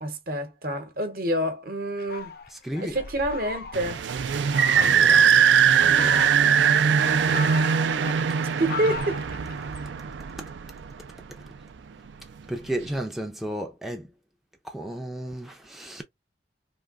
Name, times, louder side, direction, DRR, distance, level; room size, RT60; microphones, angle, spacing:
voice 1, 0.0-2.3 2.8-4.0 8.4-9.2, right 1 dB, 55° right, 0.9 m, -28 dB
Fowl, 2.0-4.0 4.5-5.1 5.7-6.7 7.1-9.9, left 5 dB, 55° left, 0.5 m, -38 dB
voice 2, 2.5-3.0 4.7-5.3 5.8-6.3 7.0-7.7 12.5-14.1 14.6-16.0, right 1 dB, ahead, 0.4 m, -34 dB
sound 1, 3.7-11.1, right 7 dB, 90° right, 0.4 m, -21 dB
3.3 x 2.7 x 2.4 m
head